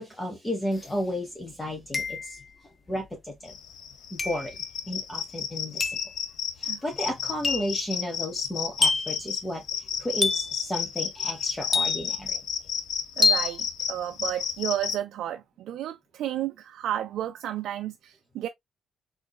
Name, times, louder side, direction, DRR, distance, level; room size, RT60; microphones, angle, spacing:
voice 1, 0.0-2.4 2.9-3.5 4.1-4.6 4.9-6.0 6.6-12.4, equal, 15° left, 1.1 m, -33 dB
sound 1, 0.8-0.9 1.9-2.5 4.2-4.5 5.8-6.1 7.4-7.8 8.8-9.2 10.2-10.6 11.7-12.3 13.2-13.6, left 4 dB, 30° left, 0.5 m, -26 dB
sound 2, 3.5-15.0, left 8 dB, 80° left, 0.7 m, -32 dB
voice 2, 13.2-18.5, right 12 dB, 80° right, 0.3 m, -32 dB
3.9 x 3.6 x 2.2 m
cardioid pair, 90°, 0 cm